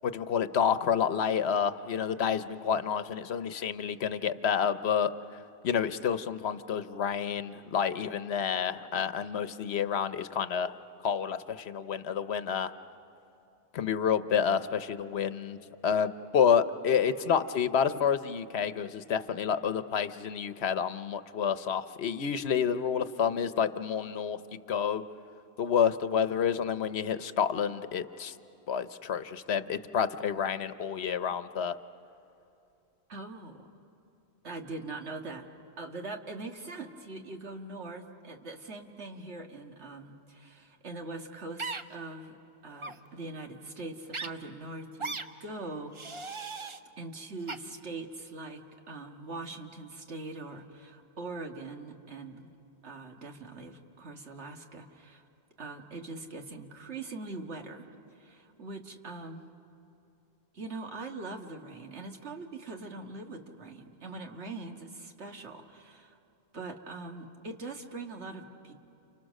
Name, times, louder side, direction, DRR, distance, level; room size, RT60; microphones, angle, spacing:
voice 1, 0.0-5.1 5.6-10.7 11.0-12.7 13.7-15.6 15.8-24.4 24.7-25.0 25.6-28.3 28.7-31.8, left 7 dB, 75° left, 12 dB, 1.0 m, -29 dB
voice 2, 33.1-33.7 34.4-35.5 35.8-42.4 42.6-46.4 47.0-52.5 52.8-55.2 55.6-57.9 58.1-59.5 60.5-66.2 66.5-68.7, right 3 dB, 90° right, 3 dB, 2.0 m, -42 dB
sound 1, 41.6-41.8 42.8-43.0 44.1-44.3 45.0-45.2 45.9-46.8 47.5-47.6, right 3 dB, 30° right, 0.7 m, -37 dB
30.0 x 30.0 x 6.5 m, 2.7 s
omnidirectional pair, 1.1 m